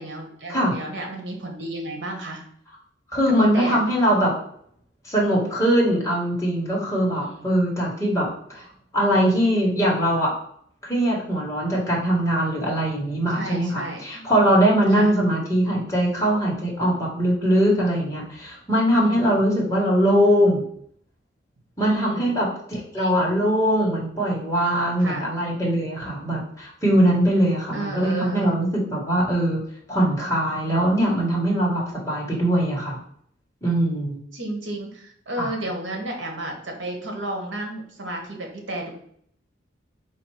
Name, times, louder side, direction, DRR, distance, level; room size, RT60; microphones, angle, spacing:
voice 1, 0.0-2.4 3.5-3.8 7.1-7.5 13.3-14.2 14.9-15.1 18.9-19.3 21.8-22.3 22.9-23.3 25.0-25.3 27.7-28.5 34.3-38.9, right 1 dB, 80° right, 2 dB, 1.1 m, -32 dB
voice 2, 3.1-4.3 5.0-8.6 8.9-10.4 10.8-20.6 21.8-29.6 29.9-33.0 33.6-34.2 35.4-35.5, equal, 15° left, -4 dB, 1.3 m, -21 dB
4.3 x 2.5 x 4.6 m, 0.64 s
head